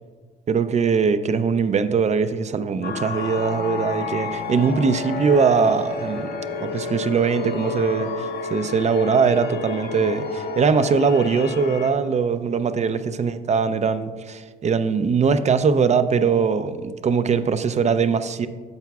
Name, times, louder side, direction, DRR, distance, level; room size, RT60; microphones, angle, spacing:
voice 1, 0.5-6.3 6.6-18.5, right 5 dB, 35° right, 12 dB, 0.4 m, -21 dB
sound 1, 2.8-11.9, left 4 dB, 55° left, 0.9 m, -30 dB
10.5 x 6.9 x 2.3 m, 1.5 s
cardioid pair, 90°, 20 cm